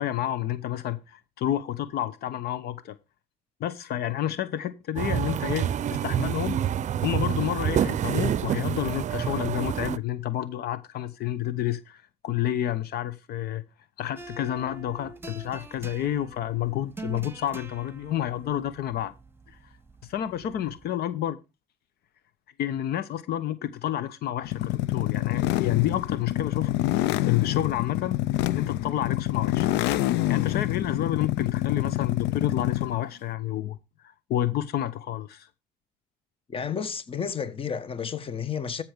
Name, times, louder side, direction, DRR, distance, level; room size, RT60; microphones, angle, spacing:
voice 1, 0.0-3.0 3.6-6.6 7.0-13.6 14.0-19.1 19.5-19.6 20.0-21.4 22.6-26.9 27.2-28.2 28.5-29.7 30.3-33.8 34.0-35.5, left 12 dB, 70° left, 1.0 m, -30 dB
sound 1, 5.0-10.0, right 10 dB, 45° right, 0.6 m, -27 dB
sound 2, 14.2-20.9, right 2 dB, 15° right, 1.3 m, -45 dB
sound 3, 24.4-33.0, left 15 dB, 90° left, 0.6 m, -26 dB
voice 2, 36.5-38.8, left 7 dB, 35° left, 1.3 m, -31 dB
14.0 x 6.1 x 5.1 m
cardioid pair, 110°, 17 cm